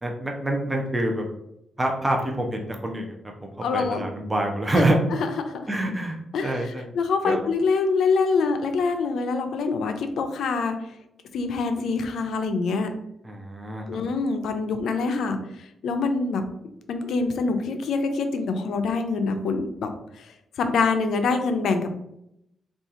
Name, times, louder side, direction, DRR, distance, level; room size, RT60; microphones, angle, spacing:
voice 1, 0.0-1.2 1.8-3.1 3.4-5.0 5.7-6.2 6.4-6.8 7.2-7.4 13.2-14.0, right 1 dB, 15° right, 1 dB, 0.5 m, -26 dB
voice 2, 3.6-4.0 4.7-4.8 5.2-5.7 6.3-10.8 11.3-12.9 13.9-16.4 16.9-19.9 20.2-20.3 20.6-21.9, left 4 dB, 80° left, 7 dB, 0.4 m, -25 dB
2.8 x 2.4 x 3.7 m, 0.81 s
cardioid pair, 110°, 0 cm